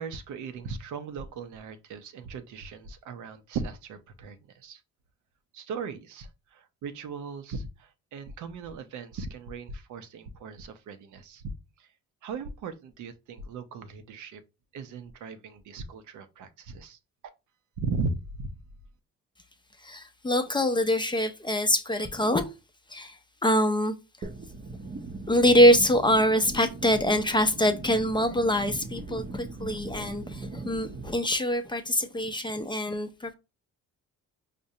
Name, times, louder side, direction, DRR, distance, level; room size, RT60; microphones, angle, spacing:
voice 1, 0.0-4.8 5.5-11.4 11.8-11.9 12.2-14.4 14.7-17.0 17.8-18.5, right 4 dB, 75° right, 0.6 m, -37 dB
voice 2, 19.8-22.5 22.9-24.3 25.3-33.3, equal, 15° left, 0.4 m, -24 dB
sound 1, 24.2-31.2, right 3 dB, 35° right, 0.6 m, -39 dB
5.0 x 2.0 x 2.7 m
cardioid pair, 90°, 30 cm